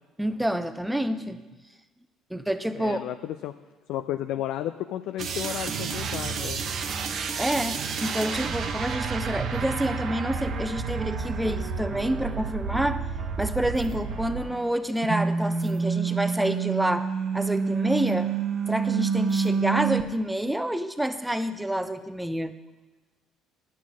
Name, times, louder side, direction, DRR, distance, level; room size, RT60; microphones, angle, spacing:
voice 1, 0.2-1.4 2.3-3.0 7.4-13.0 13.4-17.1 17.3-18.3 18.7-22.5, right 1 dB, 5° right, 11 dB, 0.8 m, -28 dB
voice 2, 2.7-3.5 3.9-6.6, left 12 dB, 65° left, 8 dB, 0.4 m, -32 dB
sound 1, 5.2-14.7 15.0-20.0, right 5 dB, 55° right, 0.9 m, -29 dB
11.0 x 7.0 x 6.2 m, 1.2 s
hypercardioid pair, 55°, 0 cm